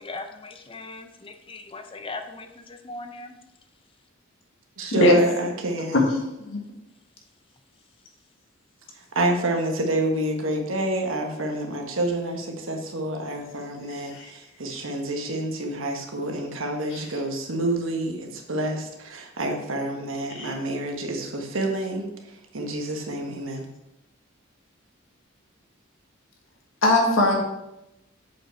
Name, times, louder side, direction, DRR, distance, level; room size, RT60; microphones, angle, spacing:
voice 1, 0.0-3.3, left 3 dB, 25° left, 7 dB, 0.6 m, -39 dB
voice 2, 4.8-6.0 9.0-23.7, right 1 dB, 70° right, 3 dB, 1.3 m, -28 dB
voice 3, 26.8-27.4, left 2 dB, 70° left, 1 dB, 1.6 m, -20 dB
7.5 x 5.2 x 4.4 m, 0.89 s
head